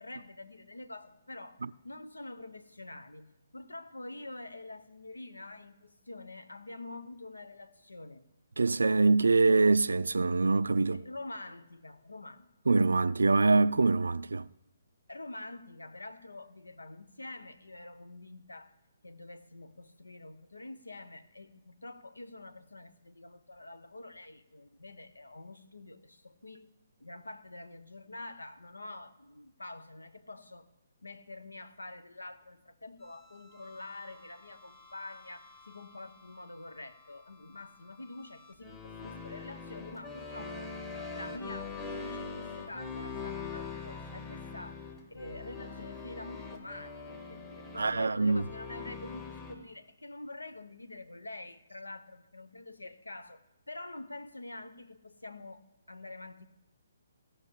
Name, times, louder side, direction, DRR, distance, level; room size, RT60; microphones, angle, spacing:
voice 1, 0.0-8.3 10.9-12.5 15.1-18.8 19.0-26.7 27.0-30.7 31.0-40.7 41.1-55.6 55.9-56.5, left 2 dB, 80° left, 0.9 m, -46 dB
voice 2, 8.6-11.0 12.7-14.4 47.8-48.4, right 3 dB, 75° right, 0.3 m, -24 dB
sound 1, 33.0-49.5, left 4 dB, 20° left, 1.6 m, -44 dB
16.0 x 5.7 x 8.4 m
figure-of-eight pair, 135°, 0 cm